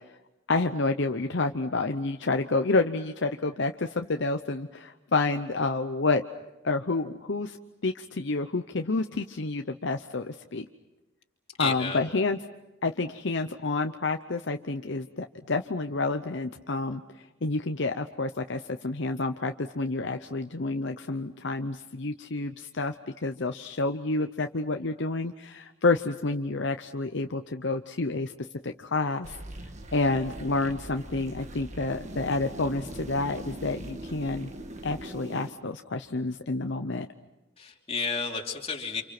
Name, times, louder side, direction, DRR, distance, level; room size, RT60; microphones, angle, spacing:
voice 1, 0.5-6.2 6.6-7.6 7.8-10.6 11.6-12.4 12.8-17.0 17.4-22.9 23.2-28.3 28.6-29.4 29.9-34.5 34.8-37.1, left 3 dB, 60° left, 6 dB, 0.8 m, -29 dB
voice 2, 11.6-12.0 37.6-39.0, left 5 dB, 30° left, 1 dB, 3.1 m, -31 dB
sound 1, 29.2-35.5, right 1 dB, 35° right, 1.6 m, -41 dB
29.0 x 27.5 x 6.0 m, 1.0 s
head